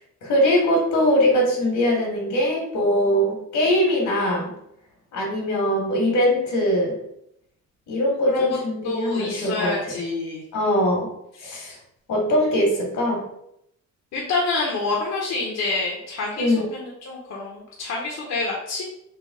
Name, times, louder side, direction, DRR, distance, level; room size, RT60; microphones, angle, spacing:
voice 1, 0.2-4.5 5.1-7.0 7.9-9.7 10.5-11.1 11.4-11.7 12.1-13.2 16.3-16.6, equal, 80° left, 0 dB, 1.4 m, -21 dB
voice 2, 8.3-8.6 8.8-10.4 11.4-11.8 14.1-18.8, left 3 dB, 60° left, -2 dB, 0.8 m, -28 dB
3.4 x 2.2 x 3.4 m, 0.75 s
cardioid pair, 90°, 30 cm